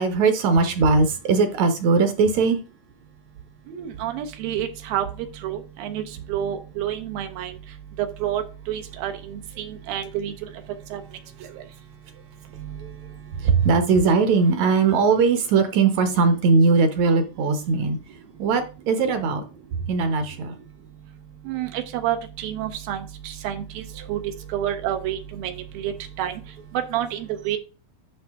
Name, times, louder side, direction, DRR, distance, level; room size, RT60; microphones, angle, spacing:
voice 1, 0.0-2.6 12.8-12.9 13.4-18.0 18.4-19.5 19.9-20.5, right 4 dB, 65° right, 8 dB, 1.9 m, -20 dB
voice 2, 3.7-5.1 5.4-6.0 6.3-7.5 8.0-10.3 10.9-11.0 12.6-12.8 21.5-23.8 24.1-24.2 24.5-26.3 26.7-27.6, right 11 dB, 85° right, 5 dB, 2.7 m, -29 dB
11.5 x 5.4 x 3.5 m, 0.33 s
omnidirectional pair, 4.1 m